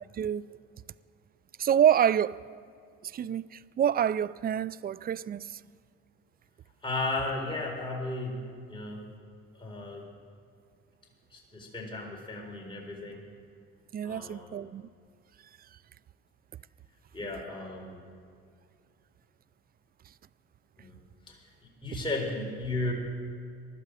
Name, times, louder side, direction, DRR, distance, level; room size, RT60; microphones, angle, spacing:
voice 1, 0.1-0.5 1.6-2.4 3.0-5.6 13.9-14.9, right 9 dB, 30° right, 0.4 m, -27 dB
voice 2, 6.8-8.4 8.7-9.0 9.6-10.1 11.3-13.2 14.0-14.6 17.1-18.0 20.8-21.0 21.3-21.4 21.8-22.9, left 2 dB, 15° left, 4.2 m, -35 dB
20.0 x 12.0 x 4.9 m
supercardioid pair, 85°, 30 cm